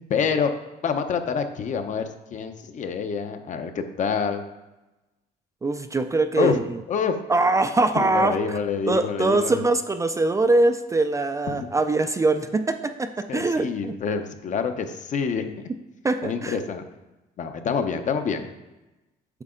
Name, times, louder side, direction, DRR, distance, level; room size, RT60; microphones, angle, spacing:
voice 1, 0.1-0.5 0.8-4.4 6.4-6.6 6.9-7.2 8.0-9.6 11.5-11.7 13.3-15.5 16.2-16.8 17.4-18.5, left 6 dB, 45° left, 8 dB, 0.8 m, -27 dB
voice 2, 5.6-6.8 7.3-8.6 8.9-13.9 16.0-16.6, right 2 dB, 20° right, 8 dB, 0.4 m, -23 dB
8.3 x 5.9 x 3.8 m, 1.0 s
cardioid pair, 110°, 17 cm